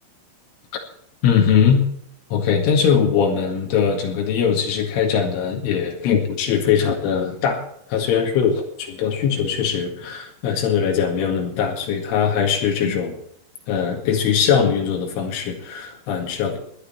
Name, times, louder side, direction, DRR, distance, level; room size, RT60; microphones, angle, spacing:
voice 1, 1.2-1.9 2.3-7.6 7.9-13.2 13.7-16.6, left 7 dB, 80° left, 1 dB, 4.5 m, -21 dB
20.0 x 11.5 x 4.4 m, 0.70 s
omnidirectional pair, 5.6 m